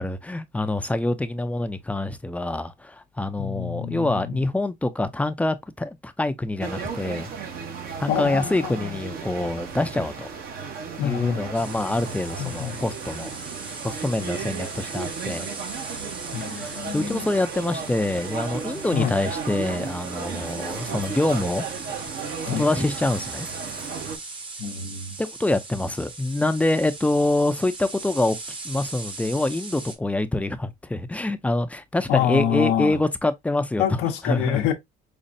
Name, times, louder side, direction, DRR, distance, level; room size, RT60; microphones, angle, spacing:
voice 1, 0.0-7.3 8.0-10.3 11.0-13.3 13.8-15.5 16.5-21.7 22.4-23.5 25.2-28.4 28.6-33.8 34.2-34.6, left 2 dB, 10° left, 0.4 m, -25 dB
voice 2, 3.4-4.4 8.1-9.0 11.0-11.5 12.4-12.8 16.3-17.3 18.9-19.1 22.4-22.6 24.6-25.2 32.1-33.0 33.8-34.7, left 10 dB, 85° left, 0.7 m, -27 dB
sound 1, 6.6-24.2, right 6 dB, 65° right, 1.0 m, -35 dB
sound 2, 11.5-29.9, right 3 dB, 30° right, 0.9 m, -39 dB
5.2 x 2.0 x 2.6 m
cardioid pair, 110°, 17 cm